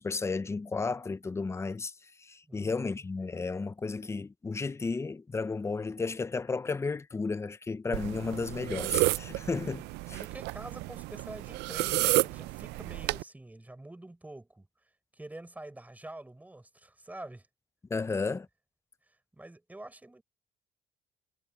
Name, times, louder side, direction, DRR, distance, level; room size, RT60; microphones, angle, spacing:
voice 1, 0.0-1.9 2.2-10.2 17.9-18.5, left 4 dB, 15° left, 0.6 m, -33 dB
voice 2, 2.5-3.0 10.2-14.7 15.1-17.5 19.1-20.2, right 2 dB, 10° right, 4.6 m, -47 dB
sound 1, 7.9-13.2, right 20 dB, 90° right, 0.5 m, -31 dB
cardioid pair, 110°, 17 cm